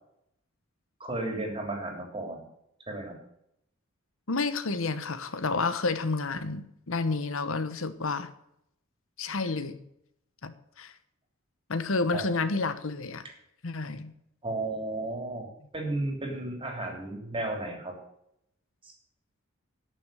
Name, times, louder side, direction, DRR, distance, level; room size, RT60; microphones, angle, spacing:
voice 1, 1.0-2.4 2.9-3.1 12.1-12.3 14.4-15.5 15.7-17.9 18.8-18.9, right 2 dB, 25° right, 2 dB, 3.1 m, -33 dB
voice 2, 4.3-8.3 9.2-9.8 10.4-10.9 11.7-13.2 13.6-14.1, left 3 dB, 70° left, 12 dB, 1.1 m, -30 dB
11.5 x 6.7 x 9.1 m, 0.76 s
head